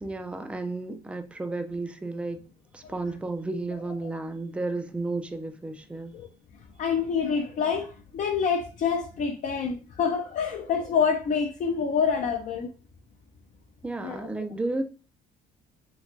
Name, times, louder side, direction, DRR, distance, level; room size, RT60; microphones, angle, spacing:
voice 1, 0.0-2.5 2.7-6.2 13.8-14.8, right 2 dB, 5° right, 0.4 m, -32 dB
voice 2, 6.8-12.7 14.0-14.2, left 6 dB, 50° left, 0.6 m, -27 dB
3.3 x 3.2 x 2.6 m
cardioid pair, 110°, 17 cm